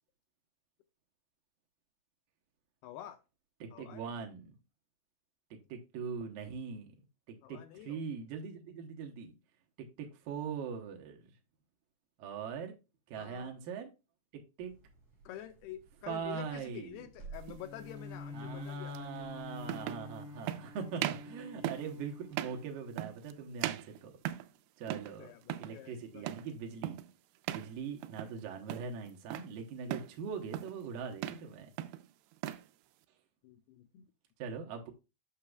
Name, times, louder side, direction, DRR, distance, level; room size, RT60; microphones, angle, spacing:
voice 1, 2.8-3.2 3.7-4.1 7.4-8.0 13.2-13.5 15.3-19.6 21.5-21.6 25.2-26.3 33.4-34.1, left 12 dB, 80° left, 9 dB, 2.5 m, -48 dB
voice 2, 3.6-4.6 5.5-6.9 7.3-7.6 7.9-9.3 10.0-11.4 12.2-12.8 13.1-13.9 14.3-14.7 16.1-17.0 18.3-24.1 24.8-25.3 25.6-27.0 27.5-31.7 34.4-34.9, right 6 dB, 70° right, 2 dB, 2.4 m, -41 dB
sound 1, 14.6-20.0, right 4 dB, 30° right, 4.6 m, -55 dB
sound 2, 17.4-17.6 18.9-19.0 19.6-20.1 20.5-20.7 21.0-21.3 21.6-21.9 22.3-22.6 23.0-23.3 23.6-24.6 24.9-25.2 25.4-25.8 26.3-26.5 26.8-27.1 27.4-27.7 28.0-28.4 28.7-29.5 29.9-30.2 30.5-30.8 31.1-31.5 31.8-32.7, right 13 dB, 90° right, 2.7 m, -38 dB
Bowed string instrument, 17.6-23.0, left 4 dB, 30° left, 3.9 m, -47 dB
8.6 x 6.5 x 2.3 m, 0.27 s
omnidirectional pair, 4.7 m